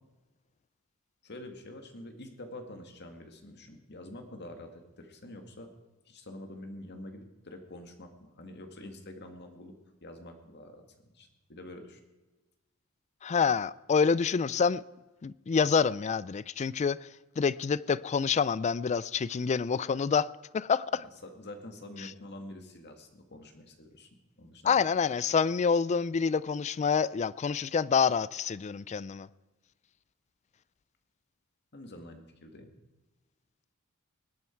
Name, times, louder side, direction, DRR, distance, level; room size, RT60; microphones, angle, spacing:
voice 1, 1.2-5.7 6.1-9.7 10.0-12.0 20.9-24.1 24.4-24.8 31.7-32.8, left 1 dB, 55° left, 2.0 m, -47 dB
voice 2, 13.2-14.8 15.2-17.0 17.4-21.0 24.6-29.3, left 6 dB, 35° left, 0.3 m, -27 dB
20.0 x 9.2 x 4.5 m
head